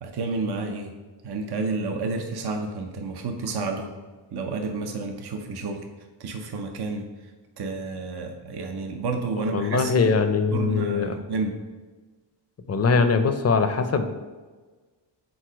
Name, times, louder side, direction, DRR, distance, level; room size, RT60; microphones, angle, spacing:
voice 1, 0.0-0.9 1.2-3.9 4.3-5.8 6.2-7.0 7.6-9.9 10.5-11.6, right 3 dB, 60° right, 4 dB, 0.7 m, -30 dB
voice 2, 9.5-11.2 12.7-14.3, left 4 dB, 35° left, 8 dB, 0.6 m, -22 dB
4.8 x 4.1 x 5.0 m, 1.3 s
cardioid pair, 80°, 45 cm